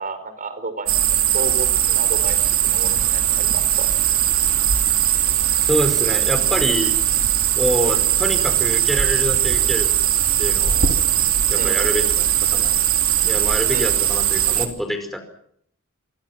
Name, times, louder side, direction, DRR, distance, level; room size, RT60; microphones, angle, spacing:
voice 1, 0.0-3.9 11.5-12.1 13.7-14.1, right 2 dB, 40° right, 11 dB, 4.9 m, -32 dB
sound 1, 0.9-14.7, right 11 dB, 70° right, 3.2 m, -19 dB
voice 2, 5.6-6.9 7.5-9.9 10.4-11.0 11.5-12.2 12.5-12.8 13.2-15.2, equal, ahead, 7 dB, 5.1 m, -25 dB
28.5 x 24.5 x 6.0 m, 0.68 s
head